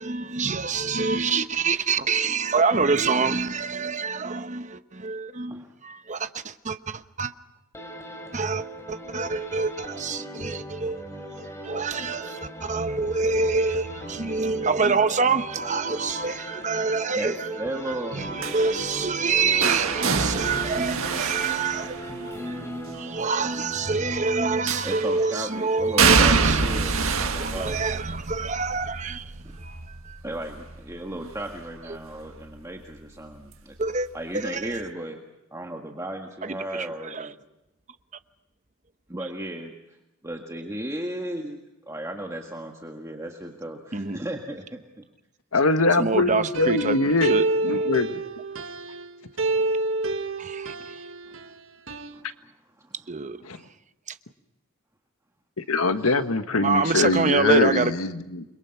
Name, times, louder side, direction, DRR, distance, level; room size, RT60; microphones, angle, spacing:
voice 1, 0.0-7.3 8.3-11.0 11.4-22.7 22.9-30.2 31.9-32.0 33.8-34.1 34.3-34.8 36.4-37.3 43.9-44.2 46.0-47.4 47.7-47.9 50.4-51.0 53.1-53.4 54.1-54.2 56.6-57.9, right 4 dB, 35° right, 1.0 m, -27 dB
sound 1, 7.7-25.0, equal, 15° left, 3.9 m, -39 dB
voice 2, 17.1-18.2 24.8-27.8 30.2-33.8 34.1-35.2 35.5-37.3 39.1-40.0 40.2-41.6 41.9-45.0 49.5-49.6 50.7-51.0 51.3-51.4 52.1-53.0 56.0-56.2, right 1 dB, 15° right, 1.8 m, -35 dB
sound 2, 18.4-22.5 24.7-25.3 26.0-31.8 32.1-32.5 33.8-33.9, right 5 dB, 80° right, 1.7 m, -26 dB
voice 3, 45.5-47.4 47.6-48.2 53.5-53.6 55.6-58.4, left 3 dB, 90° left, 1.5 m, -23 dB
sound 3, 46.5-49.1 49.4-51.5 51.9-52.2, right 2 dB, 65° right, 1.5 m, -28 dB
29.0 x 22.5 x 5.9 m
head